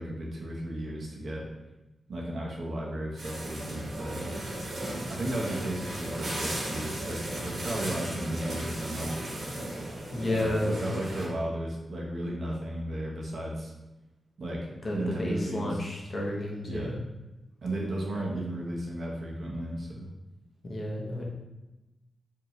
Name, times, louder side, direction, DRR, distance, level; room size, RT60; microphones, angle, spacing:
voice 1, 0.0-1.5 2.1-4.2 5.1-9.3 10.3-13.7 14.4-14.7 14.9-15.8 16.6-17.0 17.6-20.1, right 1 dB, 55° right, -2 dB, 0.8 m, -34 dB
sound 1, 3.2-11.2, right 1 dB, 70° right, 1.2 m, -35 dB
voice 2, 10.1-10.8 14.8-16.9 20.6-21.2, left 1 dB, 30° left, -3 dB, 0.8 m, -31 dB
4.7 x 2.7 x 3.0 m, 1.0 s
wide cardioid pair, 175°, 0 cm